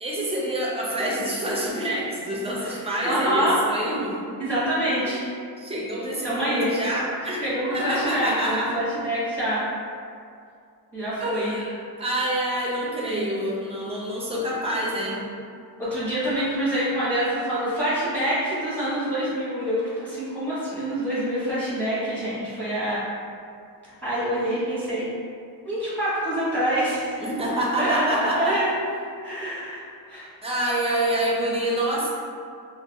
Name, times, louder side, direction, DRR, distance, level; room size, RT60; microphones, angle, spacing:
voice 1, 0.0-4.2 5.0-5.2 5.6-7.4 7.7-8.7 11.2-15.3 27.2-28.6 30.4-32.1, right 1 dB, 15° right, -5 dB, 0.4 m, -27 dB
voice 2, 3.0-3.6 4.4-5.2 6.2-6.7 7.4-9.6 10.9-11.5 13.1-13.3 14.3-14.4 15.8-23.0 23.8-25.1 25.6-27.2 27.8-28.8 29.2-29.8 30.1-30.3, right 1 dB, 5° left, -11 dB, 0.9 m, -26 dB
2.3 x 2.2 x 2.7 m, 2.3 s
wide cardioid pair, 145°, 39 cm